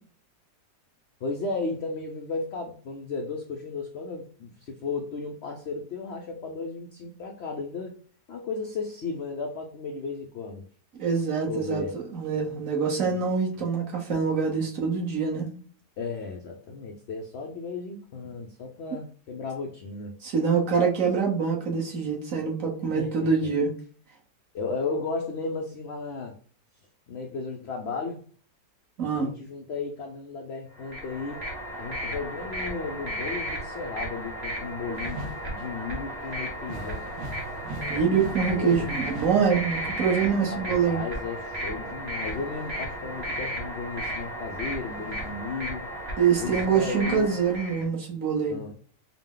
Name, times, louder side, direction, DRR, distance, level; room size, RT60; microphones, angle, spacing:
voice 1, 1.2-8.0 8.3-10.7 11.5-12.0 16.0-20.2 22.9-23.3 24.5-26.4 27.1-28.2 29.1-31.4 31.8-35.2 35.5-37.4 37.9-38.1 38.5-38.9 40.4-45.9 46.4-47.3 48.5-48.7, left 4 dB, 90° left, 2 dB, 0.5 m, -34 dB
voice 2, 11.0-15.5 20.2-23.7 29.0-29.3 37.7-41.0 46.2-48.6, right 6 dB, 55° right, -1 dB, 1.3 m, -25 dB
sound 1, 30.8-47.8, equal, 40° right, 1.4 m, -34 dB
sound 2, 34.9-43.7 44.1-45.3, right 1 dB, 70° right, 1.3 m, -43 dB
4.8 x 2.1 x 3.7 m, 0.43 s
omnidirectional pair, 1.8 m